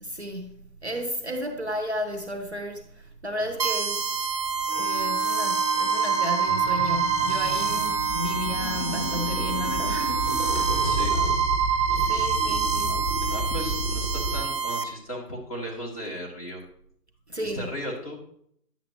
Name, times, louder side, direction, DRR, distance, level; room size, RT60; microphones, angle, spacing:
voice 1, 0.0-4.3 4.7-10.3 12.0-13.3 17.3-17.7, equal, 45° right, 0.8 m, -33 dB
sound 1, 3.6-14.8, right 6 dB, 90° right, 1.3 m, -26 dB
Wind instrument woodwind instrument, 4.7-11.1, right 1 dB, 50° left, 1.5 m, -35 dB
sound 2, 6.5-14.4, equal, ahead, 3.8 m, -31 dB
voice 2, 10.8-11.1 12.9-13.0 13.3-16.6 17.4-18.2, equal, 20° left, 1.6 m, -36 dB
10.0 x 7.4 x 2.9 m
figure-of-eight pair, 170°, 48 cm